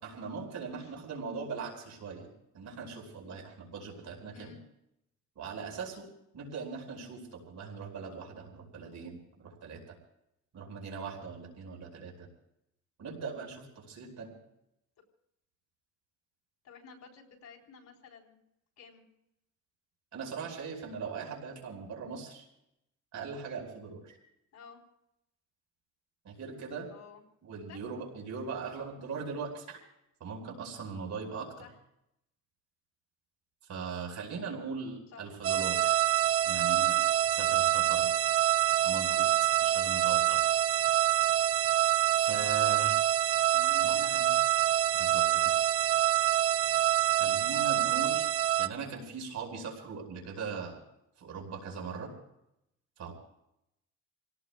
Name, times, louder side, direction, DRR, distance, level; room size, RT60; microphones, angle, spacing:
voice 1, 0.0-2.3 2.5-4.5 5.4-6.1 6.3-10.0 10.5-12.3 13.0-14.3 20.1-22.5 23.1-24.2 26.2-26.9 27.4-29.8 30.2-31.5 33.7-36.0 36.5-37.0 37.3-38.1 38.8-40.4 42.1-43.0 43.8-44.3 44.9-45.5 47.1-48.3 48.6-50.8 51.2-52.1 53.0-53.1, right 5 dB, 65° right, 0 dB, 5.2 m, -40 dB
voice 2, 16.6-18.4 18.8-19.0 24.5-24.8 26.9-27.2 27.7-27.8 31.6-31.7 35.1-35.4 42.4-43.1 43.5-44.4, left 5 dB, 65° left, 1 dB, 4.1 m, -52 dB
sound 1, 35.4-48.7, right 12 dB, 50° right, 0.7 m, -26 dB
29.0 x 18.0 x 2.4 m, 0.82 s
cardioid pair, 90°, 30 cm